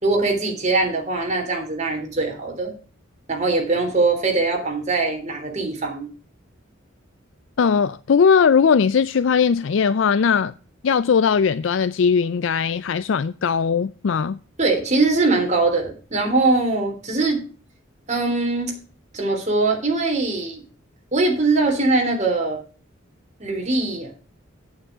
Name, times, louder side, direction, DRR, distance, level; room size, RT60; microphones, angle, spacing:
voice 1, 0.0-2.7 3.3-6.1 14.6-17.4 18.1-18.7 19.1-20.6 21.1-22.6 23.4-24.1, right 3 dB, 35° right, 3.5 m, -21 dB
voice 2, 7.6-10.5 10.8-14.4, left 6 dB, 65° left, 0.4 m, -19 dB
9.4 x 8.7 x 4.9 m
head